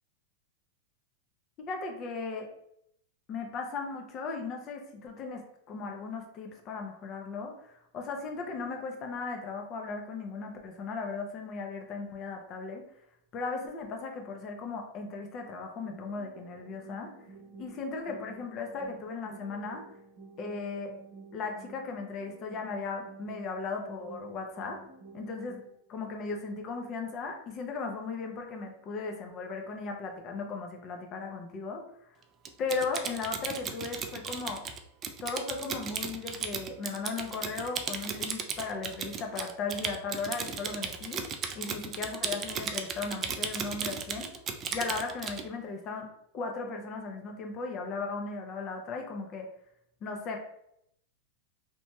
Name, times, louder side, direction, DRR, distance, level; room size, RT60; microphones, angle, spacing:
voice 1, 1.6-2.5 3.3-12.8 13.3-17.1 17.6-19.8 20.4-21.0 21.3-24.8 25.1-25.6 25.9-32.1 32.6-34.6 35.2-44.3 44.7-46.1 46.3-49.5 50.0-50.4, left 4 dB, 35° left, 3 dB, 0.5 m, -37 dB
sound 1, 15.8-25.8, right 3 dB, 90° right, 1.0 m, -51 dB
Typing, 32.4-45.4, right 6 dB, 30° right, 0.3 m, -36 dB
2.9 x 2.7 x 2.2 m, 0.73 s
supercardioid pair, 135°, 0 cm